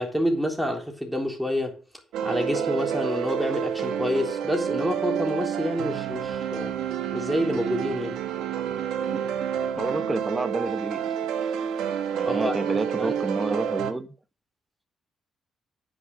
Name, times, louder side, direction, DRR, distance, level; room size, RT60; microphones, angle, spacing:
voice 1, 0.0-1.8 2.2-6.8 7.1-8.2 12.2-12.5 13.0-13.1, equal, ahead, 3.6 m, -28 dB
sound 1, 2.1-13.9, right 8 dB, 85° right, 1.5 m, -29 dB
voice 2, 9.8-11.1 12.1-14.1, right 2 dB, 20° right, 1.0 m, -29 dB
9.3 x 6.5 x 6.3 m
cardioid pair, 90°, 0 cm